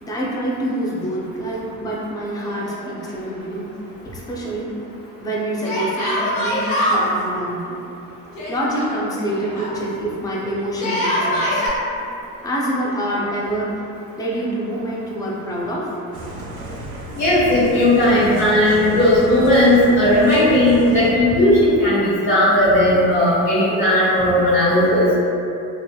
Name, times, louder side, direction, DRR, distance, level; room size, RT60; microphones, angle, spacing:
voice 1, 0.0-3.7 4.0-4.7 5.2-7.8 8.5-11.7 12.4-13.7 14.2-15.9, right 1 dB, 10° left, -4 dB, 0.3 m, -26 dB
Yell, 2.4-3.3 3.5-3.6 5.6-7.1 8.3-9.7 10.7-11.7, equal, 80° left, 0.8 m, -23 dB
sound 1, 16.1-21.1, right 1 dB, 50° right, 0.6 m, -32 dB
voice 2, 17.1-25.1, left 1 dB, 40° left, -12 dB, 1.0 m, -16 dB
2.5 x 2.5 x 2.2 m, 2.7 s
hypercardioid pair, 60°, 47 cm